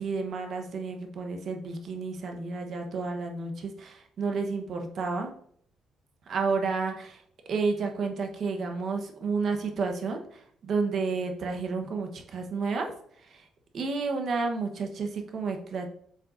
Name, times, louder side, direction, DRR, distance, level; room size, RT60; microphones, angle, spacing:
voice 1, 0.0-5.3 6.3-12.9 13.2-13.5 13.7-15.9, right 4 dB, 45° right, 4 dB, 0.9 m, -31 dB
7.9 x 5.3 x 2.5 m, 0.64 s
cardioid pair, 155°, 0 cm